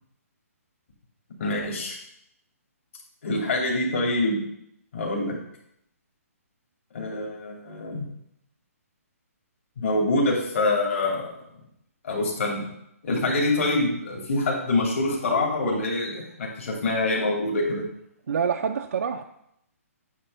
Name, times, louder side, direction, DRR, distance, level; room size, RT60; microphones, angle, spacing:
voice 1, 1.4-2.0 3.2-4.4 4.9-5.4 6.9-8.1 9.8-11.4 12.0-12.7 13.0-17.8, left 2 dB, 55° left, -2 dB, 3.0 m, -25 dB
voice 2, 18.3-19.2, right 6 dB, 70° right, 4 dB, 0.6 m, -26 dB
9.7 x 3.3 x 6.8 m, 0.77 s
hypercardioid pair, 155°, 8 cm